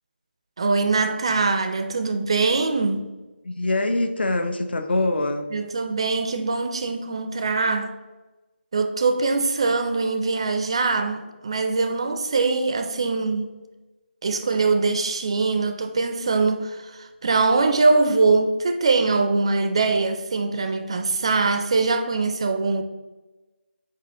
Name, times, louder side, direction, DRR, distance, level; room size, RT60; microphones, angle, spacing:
voice 1, 0.6-3.1 5.5-7.9 8.7-13.5 14.2-22.8, right 3 dB, 30° right, 0.4 m, -22 dB
voice 2, 3.4-5.5, left 2 dB, 60° left, 0.7 m, -24 dB
5.7 x 4.8 x 3.6 m
figure-of-eight pair, 170°, 6 cm